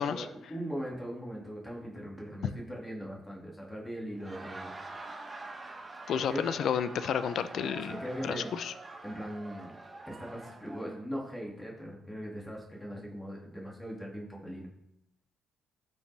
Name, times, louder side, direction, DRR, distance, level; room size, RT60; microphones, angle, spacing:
voice 1, 0.0-4.7 6.2-6.4 7.8-8.5 9.0-9.8 10.1-14.7, equal, 15° left, -3 dB, 2.2 m, -40 dB
Laughter, 4.1-10.9, right 2 dB, 25° right, 1.1 m, -45 dB
voice 2, 6.1-8.7, left 8 dB, 70° left, 12 dB, 0.5 m, -31 dB
14.0 x 5.4 x 3.4 m, 0.81 s
cardioid pair, 90°, 0 cm